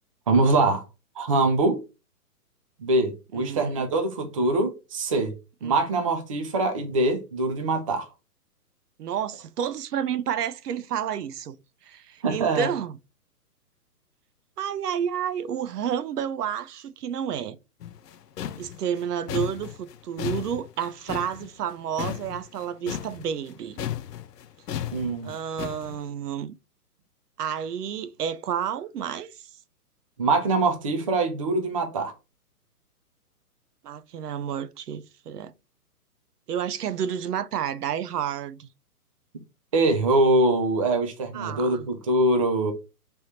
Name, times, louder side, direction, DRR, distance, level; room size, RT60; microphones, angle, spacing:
voice 1, 0.3-0.8 1.2-1.8 2.8-5.3 5.6-8.1 12.2-12.7 24.9-25.3 30.2-32.1 39.7-42.7, right 2 dB, 25° right, 0.4 m, -23 dB
voice 2, 3.3-3.7 5.6-5.8 9.0-11.6 11.8-13.0 14.6-17.6 18.6-23.8 25.2-26.6 27.4-29.5 33.8-35.5 36.5-38.7 41.3-41.9, right 8 dB, 80° right, 0.6 m, -30 dB
sound 1, 17.8-23.5 23.8-26.0, left 10 dB, 90° left, 0.6 m, -34 dB
3.4 x 3.0 x 4.1 m
hypercardioid pair, 140°, 47 cm